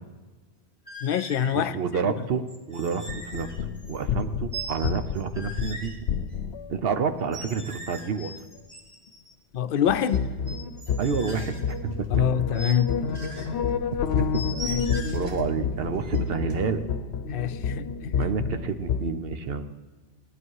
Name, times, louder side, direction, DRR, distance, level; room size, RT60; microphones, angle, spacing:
sound 1, 0.9-1.6 2.5-4.2 4.5-5.9 7.2-9.3 9.8-11.7 12.5-12.8 13.1-13.5 14.3-15.3 16.0-16.3, right 1 dB, 30° right, 1.5 m, -40 dB
voice 1, 1.0-1.8 9.5-10.3 12.1-12.9 14.7-14.8 17.3-18.1, left 9 dB, 65° left, 0.7 m, -25 dB
voice 2, 1.5-3.0 3.3-3.5 3.9-5.9 6.7-8.3 11.0-11.5 12.0-12.1 15.1-16.8 18.1-19.7, right 6 dB, 70° right, 1.0 m, -29 dB
sound 2, 3.1-6.8 9.9-19.0, left 6 dB, 90° left, 0.9 m, -29 dB
sound 3, 10.9-11.4 11.8-16.9, equal, 85° right, 1.9 m, -46 dB
17.5 x 11.5 x 4.7 m
omnidirectional pair, 1.1 m